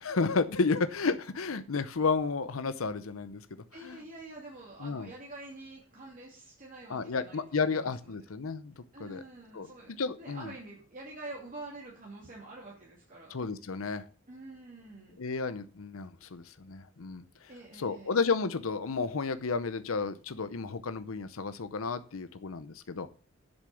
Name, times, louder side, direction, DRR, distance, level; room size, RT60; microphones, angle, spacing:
voice 1, 0.0-3.4 3.8-4.0 4.8-5.1 6.9-9.2 9.5-9.7 10.0-10.5 13.3-14.0 15.2-23.1, left 4 dB, 80° left, 12 dB, 0.7 m, -32 dB
voice 2, 3.7-8.2 8.9-13.3 14.3-15.2 17.5-18.2, right 2 dB, 40° right, -4 dB, 2.7 m, -47 dB
8.0 x 7.1 x 6.9 m, 0.40 s
head